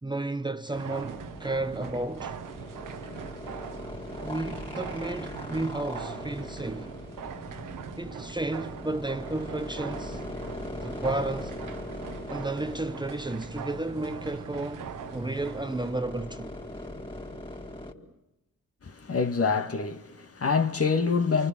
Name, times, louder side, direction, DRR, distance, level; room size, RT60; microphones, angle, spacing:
voice 1, 0.0-2.4 4.2-7.0 8.0-10.2 10.8-11.6 12.3-16.6, right 2 dB, 15° right, 1.1 m, -32 dB
sound 1, 0.7-16.0, right 8 dB, 70° right, 1.4 m, -42 dB
sound 2, 1.0-17.9, left 1 dB, 15° left, 4.3 m, -41 dB
voice 2, 18.8-21.5, left 5 dB, 45° left, 2.0 m, -26 dB
29.0 x 24.5 x 7.6 m
supercardioid pair, 45°, 33 cm